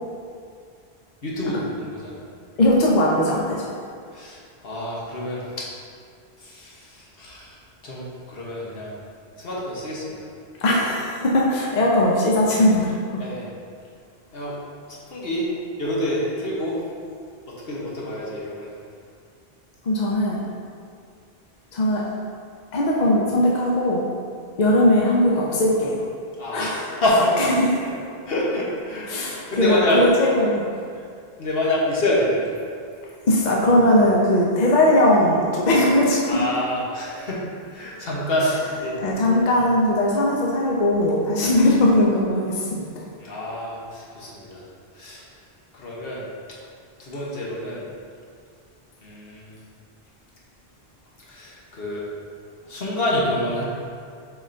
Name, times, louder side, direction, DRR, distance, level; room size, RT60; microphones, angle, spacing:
voice 1, 1.2-2.2 4.1-5.7 6.4-7.6 7.8-8.9 9.4-10.2 13.2-13.4 14.3-14.6 14.9-15.5 15.8-16.8 17.5-18.8 26.4-27.4 27.8-27.9 28.3-29.1 29.5-30.0 30.9-31.0 31.4-32.5 36.3-38.5 38.8-39.0 43.2-44.6 44.9-45.3 45.7-46.2 47.0-47.8 49.0-49.5 51.3-52.0 52.7-53.6, left 1 dB, 70° left, -5 dB, 1.4 m, -27 dB
voice 2, 2.6-3.7 10.6-13.2 19.8-20.4 21.7-22.0 22.7-24.0 24.6-26.0 26.5-26.8 27.4-27.7 29.1-30.6 33.3-36.4 39.0-43.0, left 1 dB, 50° left, -3 dB, 0.8 m, -19 dB
7.4 x 4.9 x 2.7 m, 2.3 s
omnidirectional pair, 1.0 m